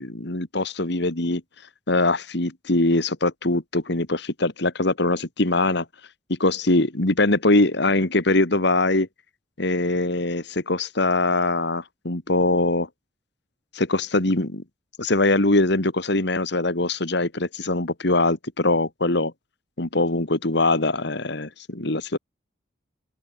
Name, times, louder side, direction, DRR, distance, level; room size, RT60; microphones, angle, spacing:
voice 1, 0.0-1.4 1.9-5.9 6.3-9.1 9.6-12.9 13.7-14.6 15.0-19.3 19.8-22.2, left 2 dB, 65° left, 2.3 m, -22 dB
open air
head